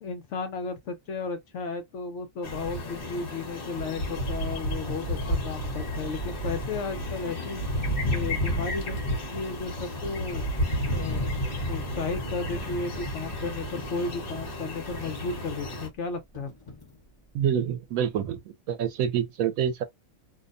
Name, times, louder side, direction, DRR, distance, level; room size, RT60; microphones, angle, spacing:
voice 1, 0.0-7.6 8.1-9.0 9.3-10.4 10.9-11.3 11.7-16.5, left 4 dB, 65° left, 0.9 m, -34 dB
sound 1, 2.4-15.9, equal, 45° left, 1.1 m, -31 dB
Coin (dropping), 9.8-18.4, left 2 dB, 20° left, 0.9 m, -51 dB
voice 2, 17.3-18.4 18.7-19.8, right 9 dB, 80° right, 1.0 m, -26 dB
2.7 x 2.1 x 2.5 m
omnidirectional pair, 1.5 m